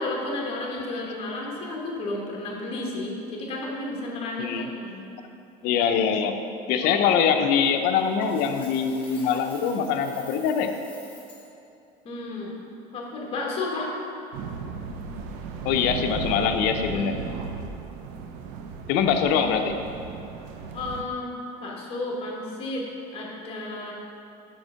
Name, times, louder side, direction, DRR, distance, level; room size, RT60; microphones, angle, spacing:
voice 1, 0.0-5.0 12.0-12.6 12.9-13.9 16.9-17.1 20.7-21.3 21.6-22.8 23.1-23.9, left 2 dB, 35° left, -2 dB, 1.2 m, -32 dB
voice 2, 5.6-6.3 6.7-10.7 15.6-17.2 18.9-19.8, left 7 dB, 65° left, 6 dB, 0.5 m, -23 dB
Coin (dropping), 8.0-11.5, left 2 dB, 10° left, 1.0 m, -49 dB
sound 1, 14.3-21.0, right 5 dB, 80° right, 0.5 m, -36 dB
5.4 x 4.3 x 5.6 m, 2.7 s
cardioid pair, 165°, 18 cm